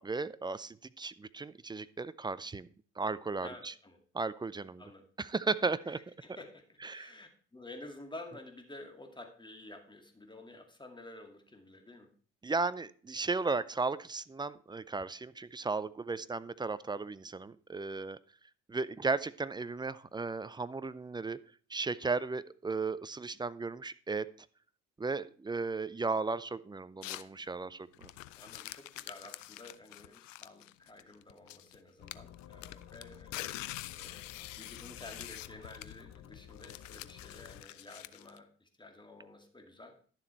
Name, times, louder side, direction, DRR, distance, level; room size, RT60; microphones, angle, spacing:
voice 1, 0.0-2.7 3.0-3.7 4.1-4.8 5.2-6.0 6.8-7.1 12.4-18.2 18.7-21.4 21.7-24.3 25.0-28.1, right 4 dB, 10° right, 16 dB, 0.4 m, -35 dB
voice 2, 3.4-4.0 4.8-5.0 5.9-12.1 16.1-16.2 28.4-33.5 33.9-39.9, left 2 dB, 10° left, 4 dB, 2.3 m, -51 dB
sound 1, 27.0-27.4 27.9-31.8 32.1-38.4, left 16 dB, 80° left, 0.5 m, -45 dB
sound 2, 32.0-37.7, left 10 dB, 45° left, 0.8 m, -53 dB
11.0 x 7.2 x 4.4 m, 0.43 s
hypercardioid pair, 50°, 38 cm